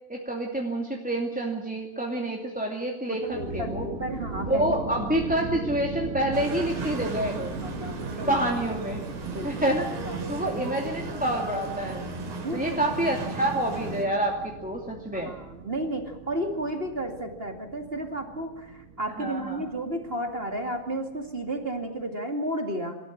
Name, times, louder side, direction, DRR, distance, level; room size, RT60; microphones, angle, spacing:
voice 1, 0.1-3.8 4.5-7.6 8.1-9.0 9.4-9.9 10.3-12.1 12.5-15.3 19.2-19.6, right 1 dB, 5° right, 0 dB, 1.7 m, -28 dB
voice 2, 3.1-4.7 7.6-8.4 9.3-9.7 10.1-10.9 12.4-13.0 15.1-23.0, right 1 dB, 20° right, 5 dB, 1.7 m, -33 dB
sound 1, 3.2-22.0, right 4 dB, 40° right, 1.1 m, -39 dB
sound 2, 6.3-14.1, right 2 dB, 90° right, 5.4 m, -37 dB
25.5 x 13.5 x 9.9 m, 1.0 s
omnidirectional pair, 4.1 m